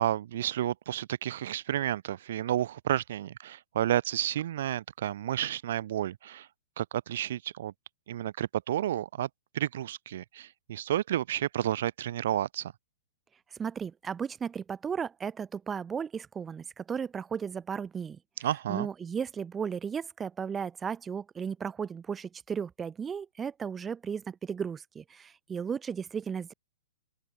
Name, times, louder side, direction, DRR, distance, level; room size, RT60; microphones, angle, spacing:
voice 1, 0.0-6.5 6.8-7.7 8.1-9.3 9.5-12.7 18.4-18.9, right 12 dB, 50° right, 0.6 m, -31 dB
voice 2, 13.6-18.2 18.7-26.5, right 6 dB, 10° right, 0.6 m, -35 dB
open air
hypercardioid pair, 170°, 0 cm